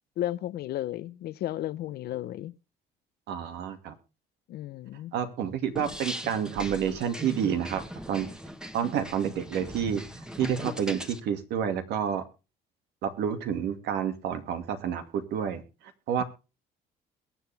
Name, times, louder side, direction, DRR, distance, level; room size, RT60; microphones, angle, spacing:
voice 1, 0.2-2.5 4.5-5.1, left 13 dB, 70° left, 0.8 m, -33 dB
voice 2, 3.3-4.0 5.1-8.3 8.7-12.2 13.0-16.2, right 8 dB, 80° right, 2.3 m, -29 dB
sound 1, 5.8-11.2, equal, 5° right, 1.4 m, -39 dB
22.0 x 7.9 x 3.5 m
cardioid pair, 110°, 17 cm